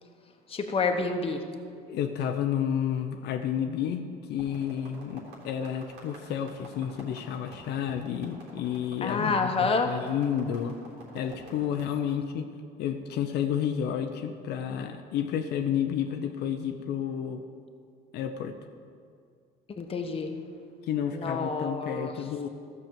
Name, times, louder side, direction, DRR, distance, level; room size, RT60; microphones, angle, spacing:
voice 1, 0.5-1.4 9.0-9.9 19.7-20.3 21.1-22.1, left 4 dB, 35° left, 5 dB, 1.2 m, -28 dB
voice 2, 1.9-10.8 11.1-12.5 12.8-17.4 18.1-18.6 20.9-22.5, left 9 dB, 80° left, 5 dB, 0.7 m, -31 dB
sound 1, 4.4-11.9, right 2 dB, 85° right, 3.4 m, -49 dB
13.5 x 6.1 x 7.5 m, 2.3 s
cardioid pair, 110°, 17 cm